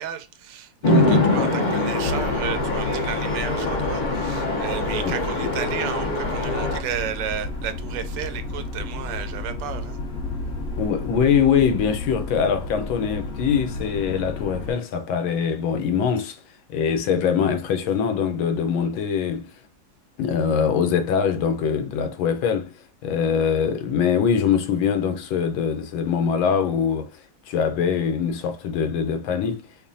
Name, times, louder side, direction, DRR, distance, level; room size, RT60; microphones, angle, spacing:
voice 1, 0.0-10.0, right 9 dB, 75° right, 1.2 m, -33 dB
Chatter / Traffic noise roadway noise / Train, 0.8-6.8, left 2 dB, 70° left, 0.4 m, -23 dB
sound 1, 2.0-14.7, left 2 dB, 45° left, 1.0 m, -32 dB
voice 2, 10.8-16.4 16.7-19.6 20.2-22.8 23.0-27.2 27.5-29.7, left 7 dB, 90° left, 1.5 m, -23 dB
5.1 x 2.2 x 2.6 m
omnidirectional pair, 2.1 m